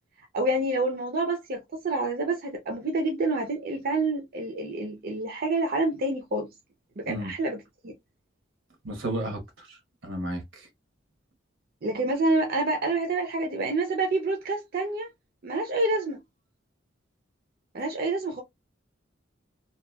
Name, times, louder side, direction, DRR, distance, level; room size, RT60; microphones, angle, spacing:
voice 1, 0.3-6.5 7.0-7.9 11.8-15.1 15.4-16.2 17.7-18.4, right 2 dB, 50° right, 0.6 m, -28 dB
voice 2, 8.8-9.8 10.0-10.4, right 1 dB, 80° right, 1.1 m, -32 dB
2.8 x 2.3 x 2.2 m
head